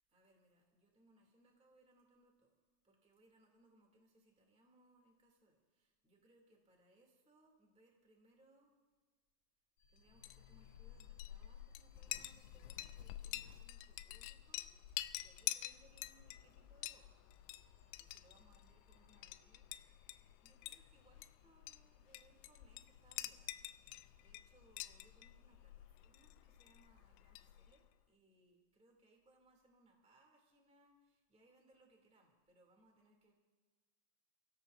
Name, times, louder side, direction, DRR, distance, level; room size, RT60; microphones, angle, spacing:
voice 1, 0.1-2.6 2.8-8.7 9.9-17.2 18.0-33.3, right 1 dB, 5° right, 0 dB, 1.0 m, -71 dB
sound 1, 9.8-15.6 16.4-21.4, left 2 dB, 40° left, 3.2 m, -77 dB
Chink clink, 10.1-27.9, left 15 dB, 85° left, 3.1 m, -49 dB
29.5 x 17.0 x 2.7 m, 1.4 s
omnidirectional pair, 5.8 m